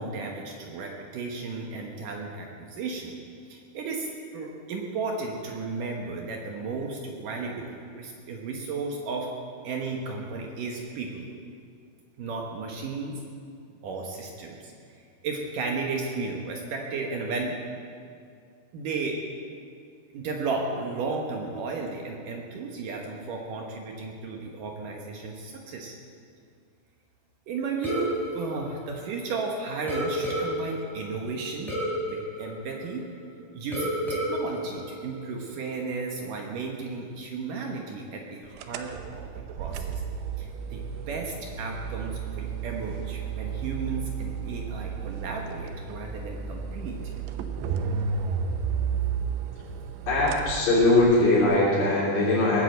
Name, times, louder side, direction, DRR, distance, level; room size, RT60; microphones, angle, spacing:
voice 1, 0.0-3.2 3.5-9.3 9.6-11.3 12.2-13.2 13.8-14.7 15.2-17.6 18.7-19.2 20.1-26.0 27.5-31.8 32.0-33.1 33.5-39.2 39.6-40.0 40.4-47.0, right 4 dB, 65° right, 1 dB, 2.4 m, -34 dB
sound 1, 27.8-29.4 29.9-33.3 33.7-35.7, equal, ahead, 2.6 m, -32 dB
sound 2, 38.6-51.4, right 6 dB, 85° right, 3.0 m, -33 dB
voice 2, 50.1-52.6, left 2 dB, 75° left, -8 dB, 5.5 m, -21 dB
19.5 x 8.5 x 7.8 m, 2.3 s
omnidirectional pair, 4.9 m